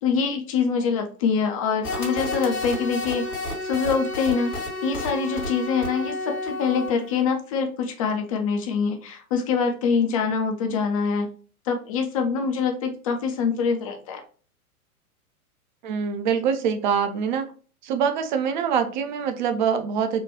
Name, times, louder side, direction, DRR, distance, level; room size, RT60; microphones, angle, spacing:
voice 1, 0.0-3.3 3.6-4.6 4.8-11.3 11.7-14.2, left 5 dB, 25° left, 4 dB, 0.4 m, -24 dB
sound 1, 1.8-7.2, left 2 dB, 80° left, 1.6 m, -31 dB
voice 2, 15.8-17.5 17.8-20.2, right 7 dB, 35° right, 8 dB, 0.5 m, -24 dB
4.4 x 2.3 x 2.8 m, 0.40 s
figure-of-eight pair, 100°, 44 cm